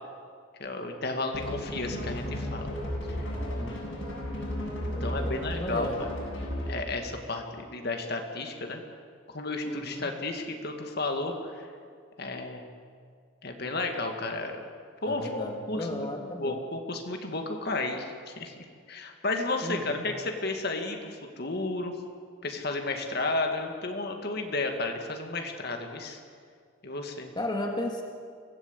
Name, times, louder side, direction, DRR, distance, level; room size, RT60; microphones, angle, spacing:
voice 1, 0.6-2.7 4.8-6.1 6.6-8.8 9.3-11.7 12.2-12.6 13.4-14.6 15.0-18.5 18.9-22.0 22.4-26.2 26.8-27.3, left 2 dB, 50° left, 4 dB, 2.2 m, -33 dB
sound 1, 1.3-6.9, equal, 75° left, 7.7 m, -34 dB
voice 2, 3.4-3.9 4.9-6.0 9.6-10.1 15.0-16.6 19.6-20.1 27.4-28.0, left 1 dB, 20° left, 2 dB, 1.9 m, -35 dB
24.5 x 17.0 x 8.3 m, 2.1 s
head